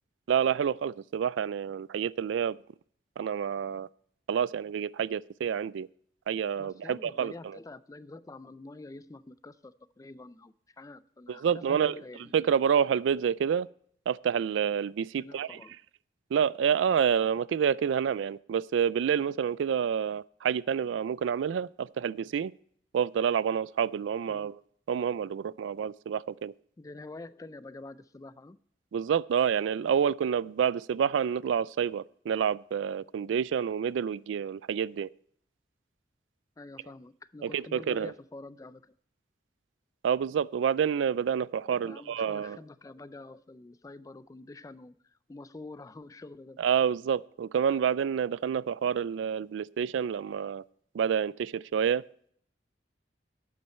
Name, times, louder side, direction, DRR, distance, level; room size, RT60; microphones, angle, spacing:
voice 1, 0.3-2.6 3.2-3.9 4.3-5.9 6.3-7.3 11.3-12.0 12.3-13.7 14.1-15.6 16.3-22.5 22.9-24.6 24.9-26.5 28.9-35.1 37.4-38.1 40.0-42.6 46.6-50.6 50.9-52.0, right 7 dB, 90° right, 21 dB, 0.3 m, -28 dB
voice 2, 6.6-12.3 15.2-15.7 24.3-24.5 26.8-28.6 36.6-38.9 41.7-46.6, left 2 dB, 20° left, 16 dB, 0.3 m, -47 dB
12.0 x 8.6 x 4.3 m, 0.64 s
head